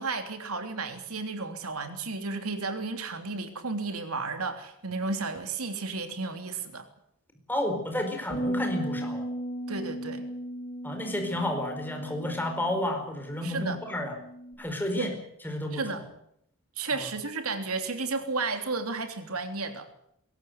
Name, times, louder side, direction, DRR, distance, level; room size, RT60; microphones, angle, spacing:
voice 1, 0.0-6.9 9.7-10.2 13.4-13.8 14.9-15.2 15.7-16.0 16.8-19.9, right 3 dB, 90° right, 7 dB, 3.3 m, -33 dB
voice 2, 7.5-9.2 10.8-14.1 14.6-15.1 15.4-16.0 16.9-17.0, left 1 dB, 10° left, 3 dB, 4.6 m, -31 dB
sound 1, 8.3-14.5, equal, 35° left, 6.9 m, -36 dB
22.0 x 17.5 x 8.0 m, 0.73 s
head